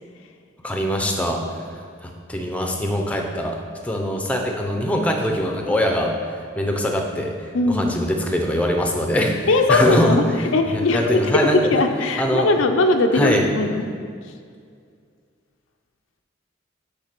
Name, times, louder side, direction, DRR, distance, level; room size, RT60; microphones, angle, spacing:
voice 1, 0.6-1.6 2.0-3.6 3.8-6.1 6.6-7.3 7.7-10.2 10.7-11.8 12.2-12.5 13.1-13.4, equal, 5° left, 2 dB, 0.5 m, -22 dB
voice 2, 7.5-7.9 9.5-10.2 10.5-13.8, left 2 dB, 85° left, 5 dB, 0.6 m, -19 dB
8.8 x 3.3 x 5.9 m, 2.2 s
head